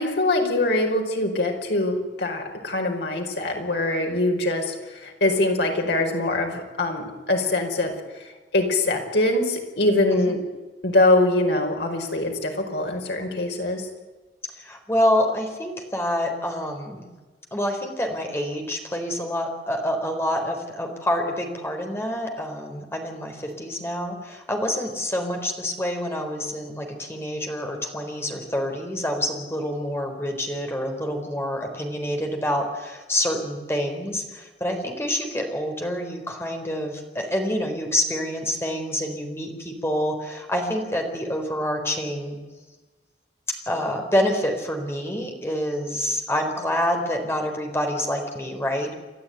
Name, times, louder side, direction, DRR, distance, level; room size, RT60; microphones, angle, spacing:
voice 1, 0.0-10.4 10.8-13.9, left 2 dB, 75° left, 2 dB, 5.0 m, -23 dB
voice 2, 14.6-17.1 17.5-42.4 43.7-48.9, left 1 dB, 15° left, 3 dB, 4.0 m, -27 dB
30.0 x 12.5 x 9.3 m, 1.3 s
head